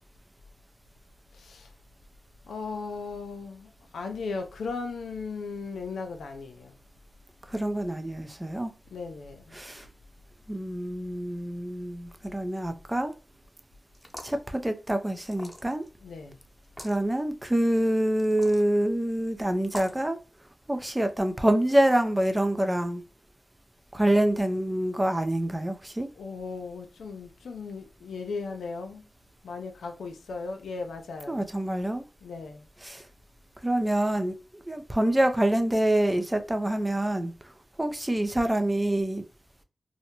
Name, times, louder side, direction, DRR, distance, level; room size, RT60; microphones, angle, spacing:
voice 1, 1.3-1.7 2.5-6.8 8.9-9.6 16.0-16.4 26.2-29.1 29.4-31.5 32.2-32.7, left 4 dB, 85° left, 0.4 m, -37 dB
voice 2, 7.5-8.7 9.5-9.9 10.5-13.1 14.2-15.9 16.8-20.2 20.7-23.0 23.9-26.1 31.3-32.0 32.8-33.0 33.6-37.5 37.8-39.2, right 1 dB, 20° right, 0.5 m, -26 dB
sound 1, 13.9-14.4 15.3-15.9 16.6-17.0 18.2-18.7 19.7-20.0, left 1 dB, 10° left, 1.0 m, -42 dB
2.7 x 2.1 x 2.8 m
cardioid pair, 45°, 0 cm